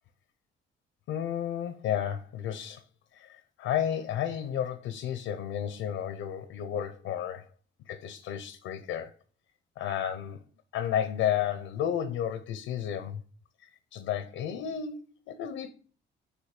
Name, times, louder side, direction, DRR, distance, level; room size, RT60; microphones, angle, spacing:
voice 1, 1.1-2.8 3.1-7.5 7.9-9.1 9.8-10.4 10.7-13.2 13.6-15.7, left 9 dB, 90° left, 0.6 m, -32 dB
6.1 x 3.0 x 5.7 m
cardioid pair, 90°, 20 cm